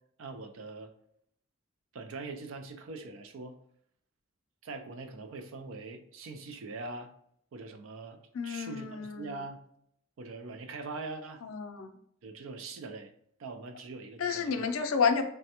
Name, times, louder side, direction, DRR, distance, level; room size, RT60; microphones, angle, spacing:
voice 1, 0.2-0.9 1.9-3.6 4.6-7.1 7.5-9.6 10.2-11.4 12.2-13.1 13.4-14.7, right 3 dB, 70° right, 6 dB, 0.4 m, -42 dB
voice 2, 8.3-9.4 11.4-11.9 14.2-15.2, left 6 dB, 80° left, 7 dB, 0.4 m, -30 dB
3.2 x 2.1 x 2.8 m, 0.70 s
head